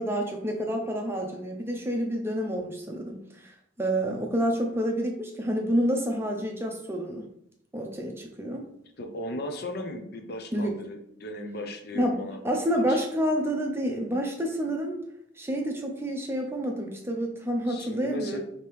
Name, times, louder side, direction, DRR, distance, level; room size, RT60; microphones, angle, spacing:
voice 1, 0.0-7.3 7.7-8.7 10.5-10.7 11.9-15.0 15.4-18.4, equal, 10° right, 2 dB, 0.5 m, -29 dB
voice 2, 9.0-13.0 17.7-18.4, left 1 dB, 50° left, 5 dB, 0.6 m, -37 dB
5.0 x 2.8 x 3.1 m, 0.74 s
head